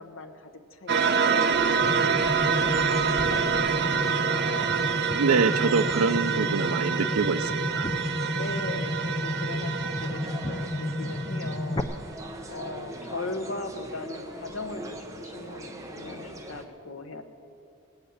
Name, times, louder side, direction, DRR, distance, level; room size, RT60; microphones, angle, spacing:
voice 1, 0.0-2.1 2.5-4.8 8.3-11.8 12.5-17.2, left 2 dB, 70° left, 6 dB, 1.2 m, -39 dB
sound 1, 0.9-11.6, right 6 dB, 50° right, 0.8 m, -27 dB
sound 2, 1.0-16.6, right 1 dB, 15° right, 1.0 m, -42 dB
sound 3, 1.8-11.8, left 1 dB, 20° left, 0.6 m, -32 dB
voice 2, 5.2-7.9, right 4 dB, 80° right, 7 dB, 0.5 m, -25 dB
18.5 x 8.0 x 8.8 m, 2.5 s
head